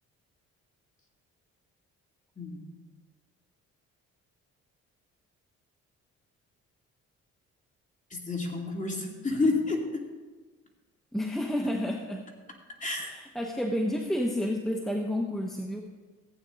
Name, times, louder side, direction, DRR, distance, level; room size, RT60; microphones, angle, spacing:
voice 1, 8.1-10.0 12.8-13.1, left 3 dB, 25° left, 0 dB, 2.5 m, -29 dB
voice 2, 11.1-12.3 13.0-15.9, left 1 dB, ahead, 1 dB, 0.9 m, -30 dB
15.5 x 8.9 x 3.9 m, 1.3 s
cardioid pair, 90°, 30 cm